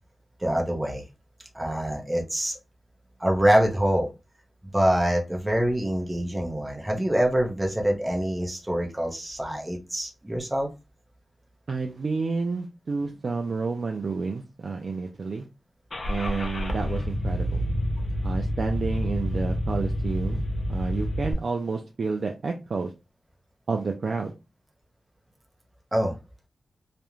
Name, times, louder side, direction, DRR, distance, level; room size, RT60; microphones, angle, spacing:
voice 1, 0.4-1.0 1.5-2.6 3.2-4.1 4.7-10.7 25.9-26.1, right 1 dB, 15° right, 0 dB, 0.6 m, -25 dB
voice 2, 11.7-15.5 16.1-17.6 18.2-20.4 20.7-22.9 23.7-24.3, right 4 dB, 55° right, 3 dB, 0.3 m, -30 dB
Car / Engine starting, 15.9-21.3, equal, 50° left, 0.5 m, -28 dB
2.4 x 2.1 x 2.9 m, 0.27 s
wide cardioid pair, 110°, 0 cm